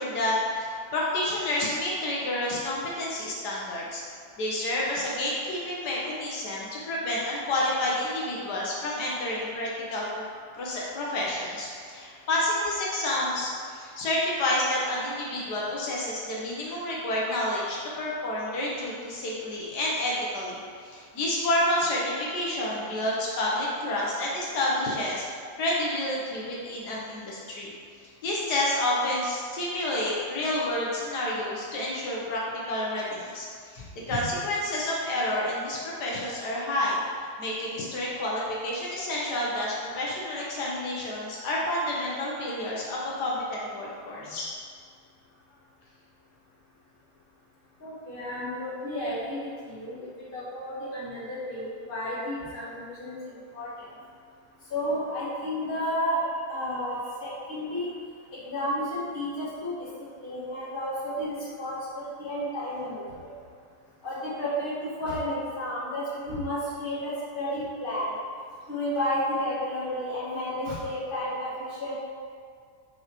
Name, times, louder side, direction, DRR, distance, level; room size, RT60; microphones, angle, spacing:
voice 1, 0.0-4.0 4.4-10.2 10.5-27.7 28.2-32.4 32.7-44.5, left 1 dB, 80° left, -5 dB, 1.5 m, -29 dB
voice 2, 47.8-53.9 54.7-57.9 58.5-59.7 60.2-63.3 64.0-68.1 68.7-71.9, equal, 35° left, -9 dB, 1.7 m, -32 dB
8.3 x 4.0 x 3.0 m, 2.2 s
omnidirectional pair, 1.8 m